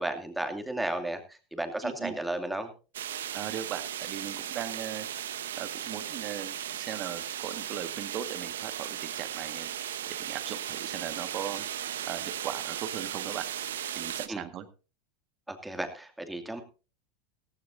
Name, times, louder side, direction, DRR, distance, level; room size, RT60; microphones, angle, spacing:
voice 1, 0.0-2.7 14.3-14.4 15.5-16.6, right 1 dB, 5° right, 6 dB, 2.5 m, -34 dB
voice 2, 1.8-2.2 3.3-5.1 5.6-9.7 10.1-11.7 12.0-13.4 13.9-14.7, right 10 dB, 45° right, 10 dB, 1.7 m, -38 dB
sound 1, 2.9-14.3, right 10 dB, 85° right, 1.0 m, -36 dB
16.5 x 15.0 x 2.7 m, 0.33 s
hypercardioid pair, 95°, 0 cm